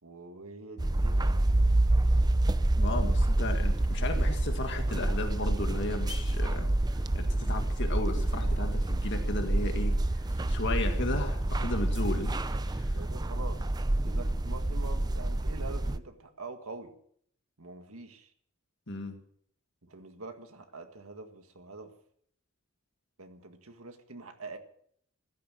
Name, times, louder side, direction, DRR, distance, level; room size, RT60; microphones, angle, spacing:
voice 1, 0.0-1.4 12.9-13.7 14.0-17.0 17.6-18.3 19.8-21.9 23.2-24.6, right 3 dB, 75° right, 6 dB, 1.9 m, -45 dB
sound 1, 0.8-16.0, right 1 dB, 20° right, 0.5 m, -27 dB
voice 2, 2.7-6.7 7.1-10.0 10.3-12.9 18.9-19.2, left 2 dB, 55° left, 4 dB, 1.9 m, -35 dB
15.0 x 13.0 x 6.3 m, 0.64 s
head